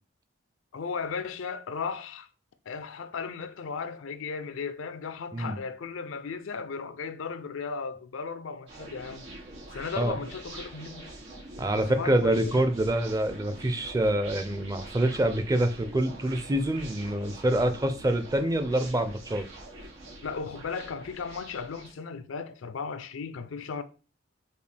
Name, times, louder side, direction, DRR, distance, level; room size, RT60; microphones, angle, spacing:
voice 1, 0.7-2.3 2.7-9.3 9.7-11.1 11.7-12.7 20.2-23.8, left 5 dB, 85° left, 0.5 m, -36 dB
sound 1, 8.7-21.9, right 2 dB, 65° right, 2.2 m, -45 dB
voice 2, 11.6-19.5, right 1 dB, 20° right, 0.4 m, -26 dB
5.2 x 2.3 x 3.3 m
head